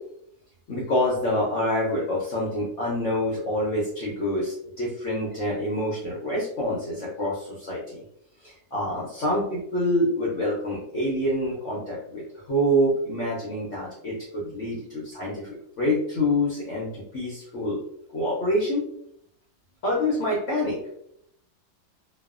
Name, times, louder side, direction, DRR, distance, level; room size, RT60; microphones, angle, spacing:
voice 1, 0.7-8.0 8.4-17.8 18.1-18.8 19.8-20.8, left 1 dB, 75° left, -5 dB, 0.6 m, -26 dB
3.1 x 2.1 x 2.4 m, 0.74 s
omnidirectional pair, 2.1 m